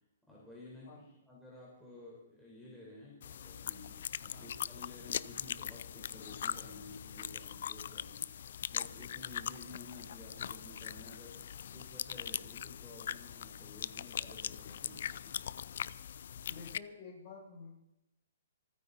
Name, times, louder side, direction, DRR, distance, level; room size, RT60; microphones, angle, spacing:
voice 1, 0.3-15.4, left 2 dB, ahead, -7 dB, 4.5 m, -53 dB
sound 1, 3.2-16.8, left 9 dB, 65° left, 0.5 m, -41 dB
voice 2, 16.4-17.8, left 4 dB, 40° left, -3 dB, 7.7 m, -50 dB
27.0 x 9.6 x 4.2 m, 0.89 s
hypercardioid pair, 160°, 0 cm